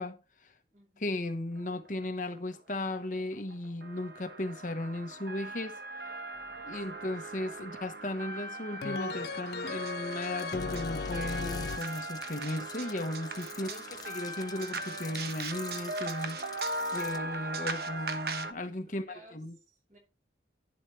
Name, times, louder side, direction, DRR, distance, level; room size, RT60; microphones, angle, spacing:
voice 1, 0.0-0.5 1.0-5.8 6.6-19.0 19.3-19.5, left 1 dB, 45° left, 1.1 m, -36 dB
voice 2, 0.7-1.2 6.6-7.0 18.7-20.0, right 2 dB, 45° right, 7.5 m, -61 dB
sound 1, 1.9-2.0 2.4-2.6 2.8-18.5, right 2 dB, 60° right, 1.2 m, -39 dB
sound 2, 8.8-11.8, left 5 dB, 65° left, 0.4 m, -36 dB
sound 3, 10.3-17.2, left 6 dB, 20° left, 0.8 m, -48 dB
11.0 x 9.7 x 3.2 m
head